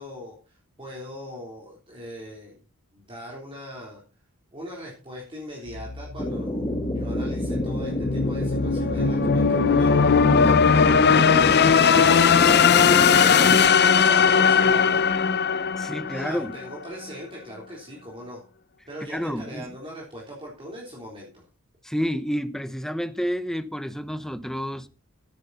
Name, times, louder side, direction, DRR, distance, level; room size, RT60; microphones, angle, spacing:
voice 1, 0.0-2.6 2.9-4.0 4.5-10.0 13.2-15.0 16.1-18.4 18.9-21.4, equal, 25° right, 3.7 m, -40 dB
sound 1, 5.7-16.7, left 6 dB, 50° left, 0.7 m, -19 dB
sound 2, 6.2-13.6, left 1 dB, 20° left, 1.5 m, -29 dB
voice 2, 15.8-16.5 19.1-19.7 21.8-24.9, equal, ahead, 0.8 m, -29 dB
13.0 x 9.7 x 4.2 m
head